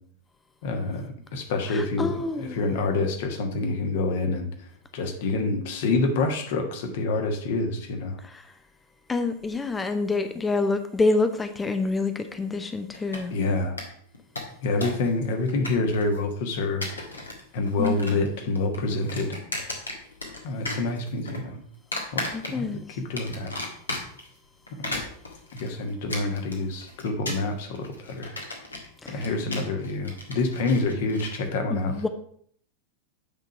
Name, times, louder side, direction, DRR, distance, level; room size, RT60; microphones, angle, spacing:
voice 1, 0.6-4.5 4.9-8.2 13.3-13.8 14.6-16.9 17.5-19.4 20.4-21.6 22.1-22.2 22.5-22.6 23.1-23.5 24.8-25.0 25.6-28.3 29.1-31.9, left 3 dB, 50° left, 1.4 m, -27 dB
voice 2, 1.7-2.6 8.2-8.5 9.1-13.4 17.8-18.2 22.3-23.0 29.0-29.3 31.7-32.1, left 3 dB, 15° left, 0.7 m, -27 dB
sound 1, 12.9-13.5 13.8-13.9 14.1-15.1 15.3-16.2 16.6-17.4 17.7-18.3 18.5-20.4 20.6-21.4 21.9-22.8 23.2-24.3 24.7-31.4, left 2 dB, 80° left, 1.6 m, -35 dB
8.8 x 3.9 x 5.8 m
figure-of-eight pair, 90°, 0 cm